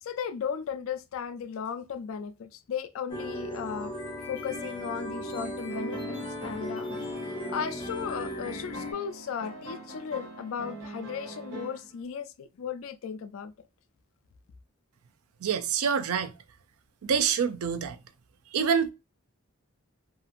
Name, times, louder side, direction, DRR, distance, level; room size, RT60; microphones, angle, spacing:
voice 1, 0.0-3.9 4.3-6.9 7.3-13.5, left 7 dB, 70° left, 0.3 m, -36 dB
sound 1, 3.1-8.9, left 1 dB, 25° left, 0.8 m, -36 dB
sound 2, 5.7-11.9, right 1 dB, 60° right, 1.0 m, -43 dB
voice 2, 15.4-16.3 17.0-18.0 18.5-18.9, right 7 dB, 85° right, 0.4 m, -26 dB
2.8 x 2.4 x 2.4 m
head